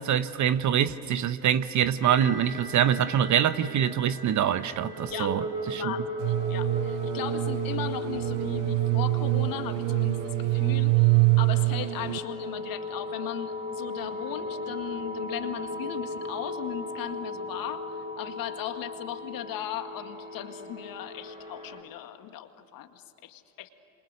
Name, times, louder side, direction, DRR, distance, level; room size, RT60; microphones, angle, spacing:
voice 1, 0.0-5.9, right 9 dB, 45° right, 1.2 m, -25 dB
sound 1, 2.0-21.8, left 2 dB, 20° right, 7.3 m, -37 dB
voice 2, 5.1-5.4 5.7-23.7, left 11 dB, 55° left, 2.1 m, -38 dB
sound 2, 6.2-12.2, right 24 dB, 65° right, 0.6 m, -25 dB
28.5 x 27.0 x 6.7 m
hypercardioid pair, 70°, 41 cm